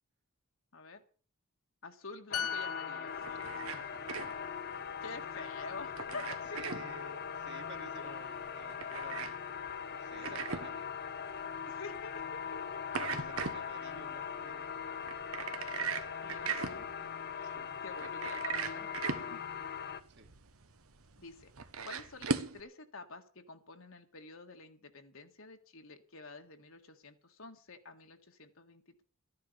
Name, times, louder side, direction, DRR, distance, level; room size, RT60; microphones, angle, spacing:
voice 1, 1.8-4.1 5.0-6.6 7.9-8.1 10.1-10.4 11.6-12.6 13.0-13.4 13.8-14.0 16.2-16.9 17.3-17.6 17.8-18.9 19.3-19.4 21.2-21.5 21.9-29.0, left 3 dB, 60° left, 5 dB, 1.8 m, -49 dB
sound 1, 2.3-5.9 6.3-6.5, left 7 dB, 80° left, 0.8 m, -42 dB
sound 2, 2.3-20.0, left 7 dB, 45° left, 0.8 m, -41 dB
sound 3, 3.1-22.6, right 5 dB, 70° right, 1.2 m, -41 dB
voice 2, 3.4-4.9 6.5-9.4 9.9-10.9 12.9-14.7 15.5-15.9 17.4-17.7 20.1-20.3, right 2 dB, 50° right, 3 dB, 2.5 m, -53 dB
13.5 x 10.5 x 6.8 m, 0.41 s
head